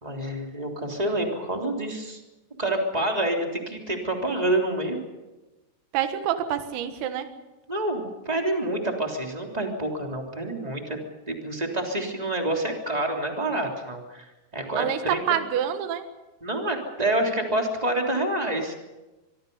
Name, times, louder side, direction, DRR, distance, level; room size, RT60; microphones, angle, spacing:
voice 1, 0.0-2.2 2.6-5.0 7.7-11.0 11.3-15.2 16.4-18.7, right 1 dB, 10° right, 2 dB, 2.2 m, -27 dB
voice 2, 5.9-7.3 14.8-16.1, right 10 dB, 85° right, 8 dB, 4.3 m, -27 dB
25.0 x 24.5 x 5.5 m, 1.1 s
omnidirectional pair, 5.9 m